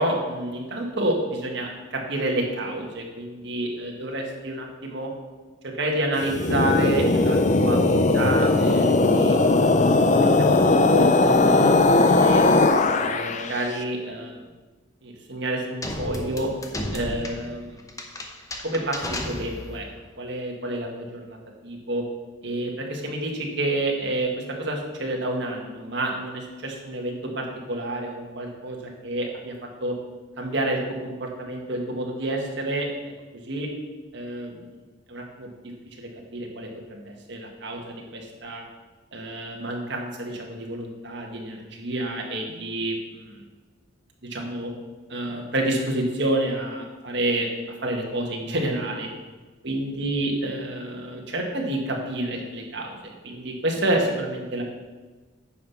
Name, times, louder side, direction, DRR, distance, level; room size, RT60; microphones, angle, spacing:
voice 1, 0.0-5.1 5.6-12.5 12.9-14.4 15.0-16.5 16.9-17.8 18.6-19.9 20.2-21.4 21.6-22.0 22.4-29.5 29.8-29.9 30.4-32.9 33.3-33.7 34.1-34.7 35.1-35.5 36.0-38.7 39.1-43.4 44.3-44.7 45.1-47.5 47.8-49.1 49.6-53.0 53.2-54.6, right 1 dB, 60° right, 0 dB, 1.7 m, -29 dB
sound 1, 6.2-13.6, left 2 dB, 35° left, 0.5 m, -19 dB
sound 2, 15.8-19.9, left 1 dB, 15° left, 0.8 m, -33 dB
9.2 x 5.6 x 5.8 m, 1.3 s
head